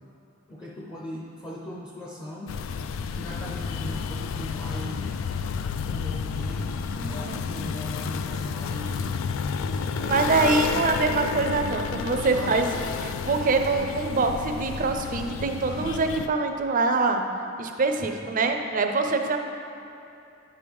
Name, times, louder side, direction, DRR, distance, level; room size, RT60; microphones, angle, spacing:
voice 1, 0.5-2.5 3.1-5.2 5.8-9.1 9.8-11.1 12.3-12.7 18.0-18.3, equal, 20° left, -4 dB, 0.6 m, -39 dB
sound 1, 2.5-16.3, left 5 dB, 85° left, 0.3 m, -31 dB
voice 2, 7.0-7.4 10.0-12.7 13.0-17.2 17.6-19.4, right 3 dB, 45° right, 5 dB, 0.5 m, -24 dB
9.6 x 4.7 x 3.5 m, 2.9 s
head